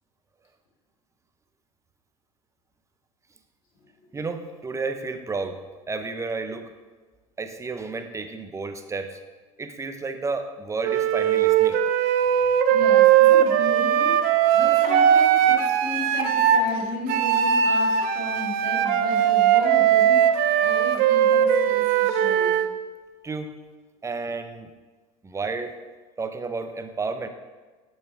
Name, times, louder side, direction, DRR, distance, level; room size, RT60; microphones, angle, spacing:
voice 1, 4.1-5.6 5.9-6.7 7.4-9.2 9.6-11.8 12.4-12.5 23.2-23.5 24.0-24.7 25.2-25.7 26.2-27.3, right 4 dB, 15° right, 8 dB, 0.7 m, -31 dB
Wind instrument woodwind instrument, 10.8-16.7 17.1-22.7, right 9 dB, 55° right, 0.6 m, -19 dB
voice 2, 12.7-14.2 14.5-22.6, left 2 dB, 70° left, -2 dB, 2.4 m, -34 dB
6.8 x 5.7 x 4.4 m, 1.3 s
hypercardioid pair, 75°, 18 cm